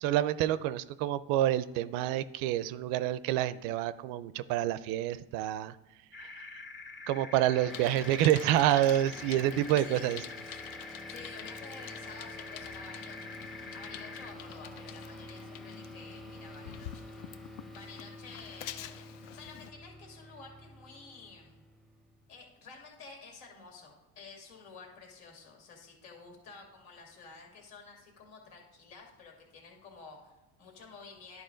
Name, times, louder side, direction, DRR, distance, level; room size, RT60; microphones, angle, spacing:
voice 1, 0.0-5.8 6.2-6.5 7.1-10.2, right 12 dB, 80° right, 16 dB, 0.5 m, -28 dB
sound 1, 6.1-14.3, left 3 dB, 30° left, 0.9 m, -46 dB
sound 2, 7.6-22.4, equal, ahead, 0.6 m, -49 dB
Bicycle, 7.7-19.7, left 12 dB, 65° left, 0.6 m, -48 dB
voice 2, 9.8-10.1 11.1-13.3 13.7-17.1 17.7-21.7 22.3-31.4, left 4 dB, 85° left, 0 dB, 2.4 m, -51 dB
11.0 x 4.7 x 3.8 m, 1.0 s
supercardioid pair, 105°, 34 cm